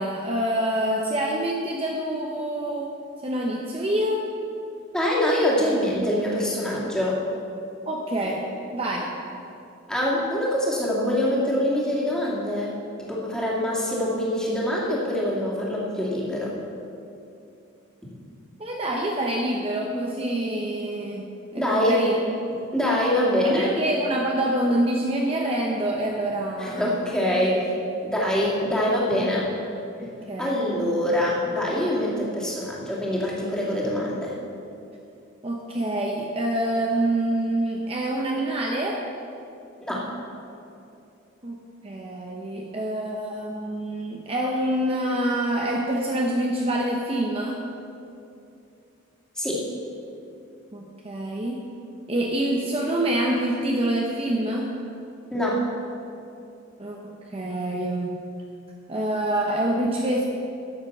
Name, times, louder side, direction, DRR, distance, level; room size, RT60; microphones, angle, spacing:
voice 1, 0.0-2.9 3.2-4.2 7.9-9.2 18.6-21.3 21.5-22.6 23.4-27.0 30.3-30.6 35.4-39.0 41.4-41.6 41.8-47.6 50.7-51.6 52.1-54.7 56.8-58.2 58.9-60.2, right 1 dB, 30° right, -1 dB, 0.8 m, -26 dB
voice 2, 4.9-7.2 9.9-12.7 13.0-16.5 21.6-22.0 22.7-23.7 26.6-27.7 28.0-29.5 30.4-34.3 39.8-40.0 49.4-49.6 55.3-55.6, left 1 dB, 5° left, -6 dB, 2.3 m, -24 dB
12.5 x 7.4 x 6.0 m, 2.7 s
head